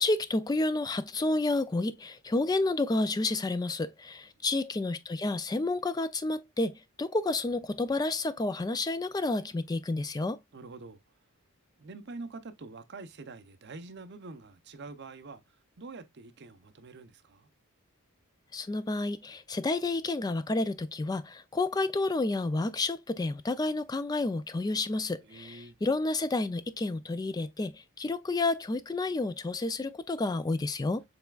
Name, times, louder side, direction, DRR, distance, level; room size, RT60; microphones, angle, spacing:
voice 1, 0.0-10.4 18.5-31.0, left 2 dB, 20° left, 0.3 m, -30 dB
voice 2, 10.5-11.0 11.8-15.4 15.8-17.5 25.2-25.7, right 3 dB, 50° right, 0.6 m, -45 dB
6.8 x 3.4 x 2.3 m
head